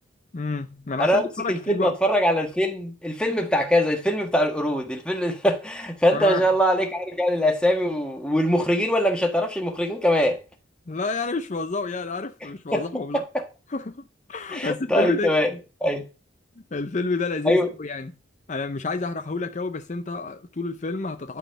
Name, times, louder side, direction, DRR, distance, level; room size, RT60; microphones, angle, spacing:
voice 1, 0.3-2.0 6.1-6.5 10.9-13.2 13.7-14.0 14.3-15.3 16.7-18.1 18.5-21.4, left 3 dB, 40° left, 0.6 m, -29 dB
voice 2, 1.0-10.4 12.7-12.8 13.1-13.4 14.5-15.5 15.8-16.0 17.4-17.7, equal, 5° left, 1.6 m, -22 dB
12.0 x 4.2 x 6.6 m
head